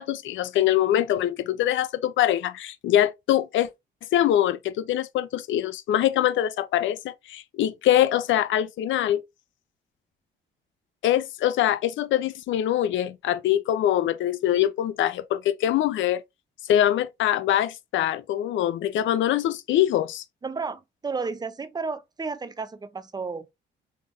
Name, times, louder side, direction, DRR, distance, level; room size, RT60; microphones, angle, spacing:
voice 1, 0.0-3.7 4.1-9.2 11.0-16.2 16.7-20.2, left 12 dB, 75° left, 0.5 m, -23 dB
voice 2, 20.4-23.5, right 4 dB, 20° right, 0.6 m, -32 dB
3.6 x 3.4 x 2.5 m
cardioid pair, 90°, 20 cm